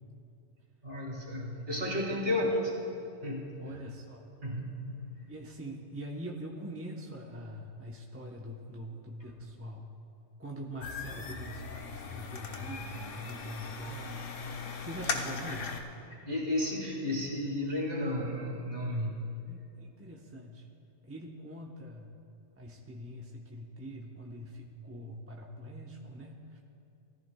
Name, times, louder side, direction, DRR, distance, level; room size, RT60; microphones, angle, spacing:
voice 1, 0.8-2.8 3.2-3.6 4.4-4.9 16.3-19.4, left 1 dB, 40° right, -2 dB, 2.3 m, -33 dB
voice 2, 3.6-4.2 5.3-9.8 10.4-14.3 14.8-15.7 19.5-20.7 21.0-22.1 22.6-26.6, equal, 15° right, -1 dB, 0.7 m, -43 dB
sound 1, 10.8-15.8, left 4 dB, 75° left, 1.2 m, -38 dB
19.0 x 14.0 x 2.2 m, 2.6 s
omnidirectional pair, 1.3 m